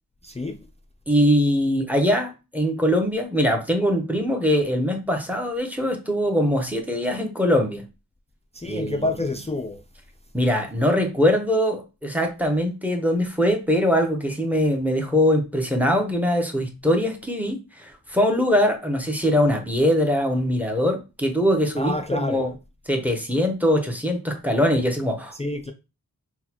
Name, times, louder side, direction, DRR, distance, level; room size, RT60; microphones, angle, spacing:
voice 1, 0.2-0.6 8.5-9.8 21.8-22.4 25.3-25.7, left 2 dB, 20° left, 0.4 m, -28 dB
voice 2, 1.1-7.8 8.7-9.1 10.3-22.5 22.9-25.3, equal, 5° right, 0.7 m, -22 dB
3.9 x 2.2 x 2.9 m
wide cardioid pair, 40°, 39 cm